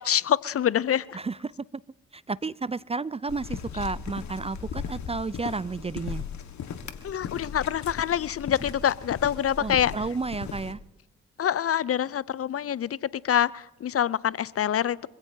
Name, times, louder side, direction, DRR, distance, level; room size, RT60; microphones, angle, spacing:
voice 1, 0.0-1.2 7.0-9.9 11.4-15.1, left 9 dB, 45° left, 20 dB, 0.6 m, -26 dB
voice 2, 1.1-1.8 2.1-6.2 9.6-10.8, right 4 dB, 20° right, 20 dB, 0.5 m, -32 dB
sound 1, 3.3-10.7, left 7 dB, 65° left, 1.7 m, -37 dB
26.0 x 16.5 x 2.8 m, 0.94 s
hypercardioid pair, 45°, 31 cm